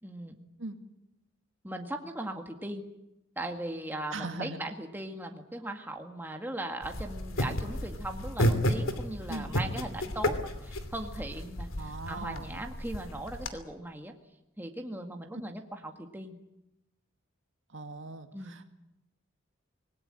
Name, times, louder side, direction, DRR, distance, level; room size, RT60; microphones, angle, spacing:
voice 1, 0.0-0.4 1.6-2.8 3.4-14.1 14.6-16.4 18.3-18.6, right 1 dB, 10° right, 3 dB, 1.9 m, -39 dB
voice 2, 4.1-4.6 9.3-9.6 11.7-12.6 17.7-18.7, right 2 dB, 65° right, 6 dB, 2.2 m, -40 dB
sound 1, 6.8-13.5, equal, 80° left, 2.8 m, -32 dB
26.0 x 20.0 x 8.9 m, 0.91 s
head